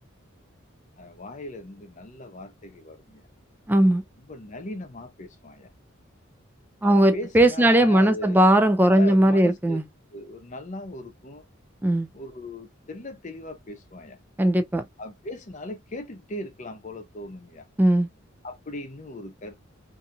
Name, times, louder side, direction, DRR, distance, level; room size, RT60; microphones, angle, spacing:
voice 1, 1.0-3.2 4.2-5.7 6.8-8.5 8.9-9.8 10.1-11.4 12.1-14.2 15.0-17.7 18.4-19.7, left 1 dB, 35° left, 0.6 m, -38 dB
voice 2, 3.7-4.0 6.8-9.8 11.8-12.1 14.4-14.8 17.8-18.1, right 1 dB, 10° right, 0.3 m, -18 dB
2.7 x 2.6 x 2.3 m
head